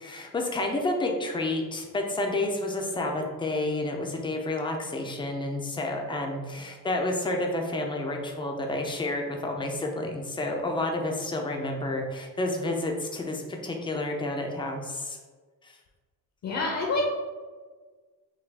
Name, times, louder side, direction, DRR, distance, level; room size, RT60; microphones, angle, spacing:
voice 1, 0.0-15.2 15.6-15.8, left 2 dB, 15° left, 2 dB, 0.4 m, -30 dB
voice 2, 16.4-17.1, left 2 dB, 45° left, -1 dB, 0.7 m, -27 dB
5.8 x 2.3 x 3.4 m, 1.4 s
cardioid pair, 165°, 38 cm